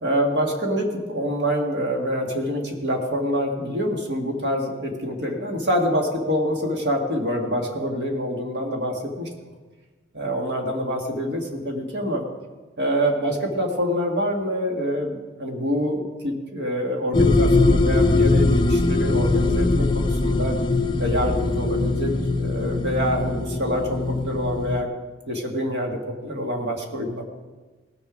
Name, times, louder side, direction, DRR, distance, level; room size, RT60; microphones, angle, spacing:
voice 1, 0.0-9.3 10.1-12.2 12.8-20.6 21.0-22.1 22.4-24.9 25.3-27.3, equal, 60° right, 1 dB, 1.8 m, -26 dB
sound 1, 17.1-24.8, left 2 dB, 25° left, 0.5 m, -21 dB
18.5 x 6.8 x 5.0 m, 1.3 s
head